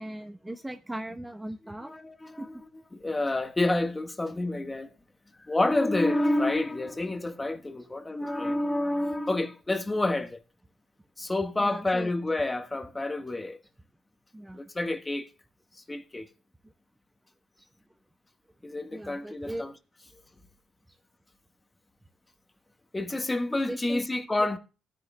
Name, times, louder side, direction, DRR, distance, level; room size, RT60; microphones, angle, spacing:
voice 1, 0.0-1.9 2.4-2.6 11.6-12.1 14.3-14.6 16.6-16.7 17.6-17.7 18.9-19.7 20.0-20.1 20.9-21.0 23.7-24.1 24.4-24.6, right 1 dB, 10° right, 0.8 m, -39 dB
voice 2, 1.8-2.4 3.0-4.9 5.4-10.4 11.2-13.6 14.5-15.3 15.9-16.3 18.6-19.7 22.9-24.6, left 2 dB, 20° left, 1.4 m, -28 dB
19.0 x 10.0 x 2.2 m
cardioid pair, 90°, 0 cm